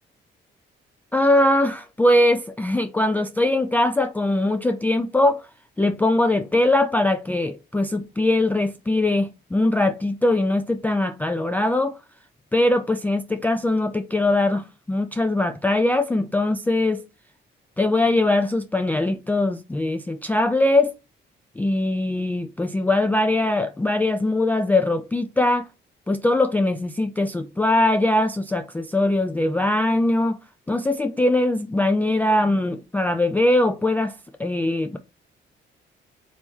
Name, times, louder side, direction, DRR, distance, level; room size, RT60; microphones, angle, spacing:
voice 1, 1.1-5.4 5.8-11.9 12.5-17.0 17.8-20.9 21.6-25.7 26.1-30.4 30.7-34.1 34.4-35.0, left 2 dB, 10° left, 0.3 m, -21 dB
4.1 x 3.0 x 3.4 m
cardioid pair, 90°, 20 cm